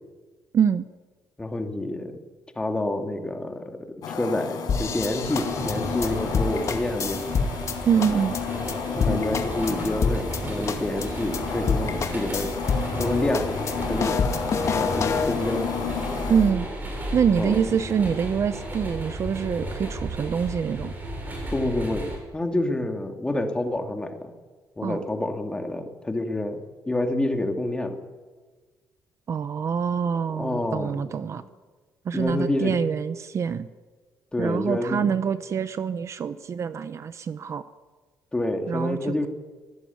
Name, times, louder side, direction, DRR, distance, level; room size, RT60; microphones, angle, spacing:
voice 1, 0.5-0.9 7.9-8.4 16.3-16.7 17.1-20.9 24.8-25.0 29.3-31.4 32.0-33.7 34.4-37.6 38.7-39.3, right 7 dB, 40° right, 13 dB, 0.8 m, -25 dB
voice 2, 1.4-2.1 2.6-7.3 8.9-12.5 13.0-13.5 13.9-14.2 14.7-15.7 17.4-17.6 21.5-22.1 22.3-24.3 24.8-28.0 30.4-31.5 32.1-32.8 34.3-35.1 38.3-39.3, left 2 dB, 10° left, 5 dB, 2.4 m, -28 dB
sound 1, 4.0-16.5, left 5 dB, 70° left, 5.0 m, -32 dB
sound 2, 4.7-7.7 8.0-8.4 8.7-8.8 9.0-10.4 10.7-11.1 11.3-11.4 11.7-13.1 13.3-15.3, left 5 dB, 45° left, 2.2 m, -27 dB
sound 3, 5.2-22.2, right 1 dB, 25° right, 8.0 m, -34 dB
24.5 x 17.5 x 9.5 m, 1.4 s
cardioid pair, 160°, 7 cm